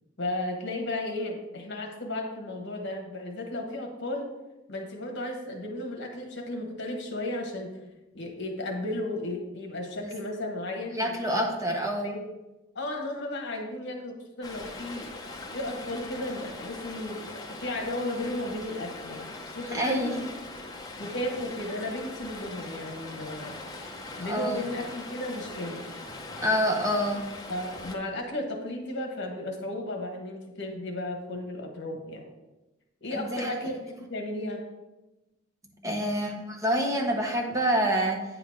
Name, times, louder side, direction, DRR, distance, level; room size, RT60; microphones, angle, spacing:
voice 1, 0.2-4.3 4.7-7.7 8.1-11.2 12.0-12.2 12.7-15.1 15.5-20.3 21.0-23.5 24.2-25.8 27.5-32.2 33.0-34.6, left 1 dB, 55° left, 2 dB, 1.2 m, -34 dB
voice 2, 10.9-12.1 19.7-20.1 24.2-24.6 26.4-27.2 33.1-33.5 35.8-38.2, equal, 15° right, 1 dB, 0.7 m, -27 dB
Stream, 14.4-28.0, left 2 dB, 20° left, 0.7 m, -41 dB
9.0 x 3.9 x 4.9 m, 1.0 s
head